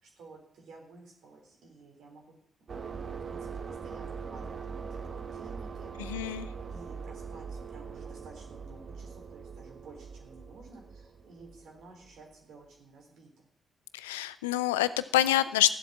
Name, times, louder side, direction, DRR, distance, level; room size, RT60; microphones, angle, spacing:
voice 1, 0.0-6.1 6.7-13.5, right 3 dB, 70° right, 0 dB, 3.8 m, -53 dB
sound 1, 2.7-12.2, right 5 dB, 50° right, 1.3 m, -42 dB
voice 2, 6.0-6.5 13.9-15.7, left 14 dB, 85° left, 15 dB, 0.5 m, -27 dB
13.5 x 7.9 x 7.5 m, 0.72 s
hypercardioid pair, 40°, 0 cm